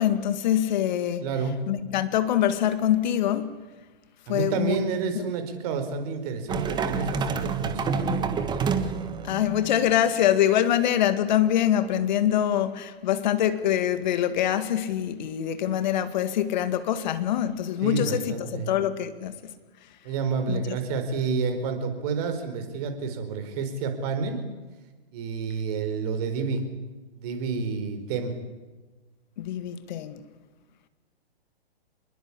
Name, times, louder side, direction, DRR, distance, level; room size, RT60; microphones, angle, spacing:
voice 1, 0.0-1.3 1.7-3.6 4.3-4.8 5.2-5.3 9.2-19.5 20.5-20.8 29.4-30.2, left 11 dB, 45° left, 11 dB, 2.0 m, -24 dB
voice 2, 1.2-1.5 4.3-8.3 17.8-18.7 20.0-24.4 25.1-26.6 27.2-28.3, right 5 dB, 40° right, 7 dB, 4.7 m, -29 dB
sound 1, 6.5-9.8, right 5 dB, 15° right, 1.6 m, -28 dB
27.0 x 21.5 x 8.6 m, 1.2 s
figure-of-eight pair, 130°, 32 cm